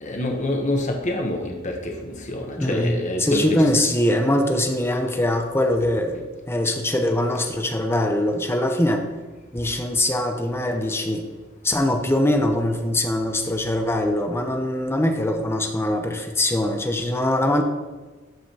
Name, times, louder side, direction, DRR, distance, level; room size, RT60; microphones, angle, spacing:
voice 1, 0.0-3.7, left 1 dB, 40° left, 1 dB, 1.0 m, -26 dB
voice 2, 2.6-9.0 9.5-11.3 11.6-17.6, left 1 dB, 15° left, 4 dB, 0.7 m, -22 dB
13.5 x 5.0 x 2.9 m, 1.3 s
head